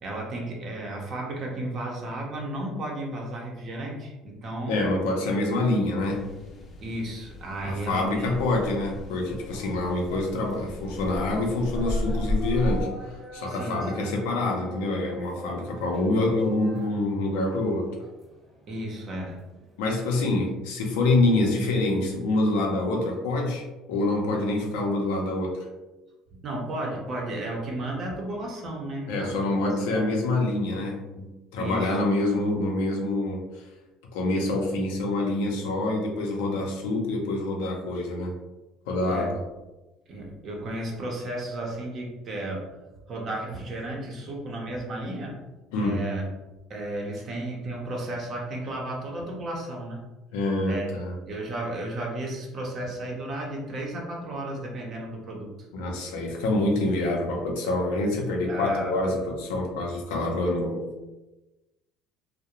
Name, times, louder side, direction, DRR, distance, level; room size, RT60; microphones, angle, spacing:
voice 1, 0.0-4.8 6.8-8.4 13.5-14.1 18.7-19.5 26.4-30.1 31.6-32.0 39.1-39.3 40.1-42.7 43.1-45.4 45.8-46.3 46.7-50.0 50.6-50.9 51.2-55.7 58.5-59.0, right 1 dB, 45° right, -1 dB, 0.6 m, -33 dB
voice 2, 4.7-6.3 7.6-17.9 19.8-25.6 29.1-33.5 34.1-38.3 38.9-39.4 45.7-46.1 50.3-51.1 55.7-61.0, left 2 dB, 90° left, 0 dB, 0.6 m, -26 dB
sound 1, 6.0-12.8, left 1 dB, 35° left, 0.6 m, -34 dB
sound 2, 9.1-20.0, equal, 20° right, 0.9 m, -44 dB
2.3 x 2.1 x 2.9 m, 1.1 s
supercardioid pair, 105°, 0 cm